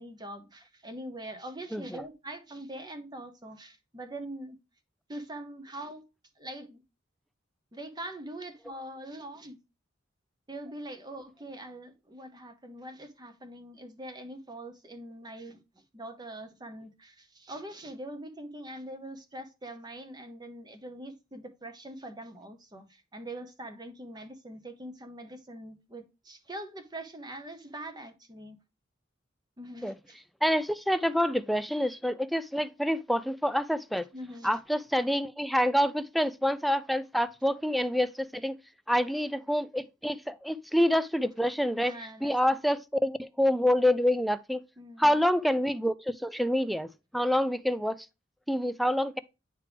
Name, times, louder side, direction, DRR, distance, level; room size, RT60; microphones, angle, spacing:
voice 1, 0.0-4.6 5.1-6.0 6.4-6.8 7.7-9.6 10.5-15.6 15.9-28.6 29.6-30.2 34.1-34.6 41.7-42.6 44.8-45.2, right 1 dB, 20° right, 0.9 m, -43 dB
voice 2, 1.7-2.0 29.8-29.9 30.4-34.1 34.4-38.6 38.9-41.9 42.2-44.6 45.0-48.1 48.5-49.2, equal, ahead, 0.3 m, -27 dB
9.6 x 3.3 x 3.3 m
head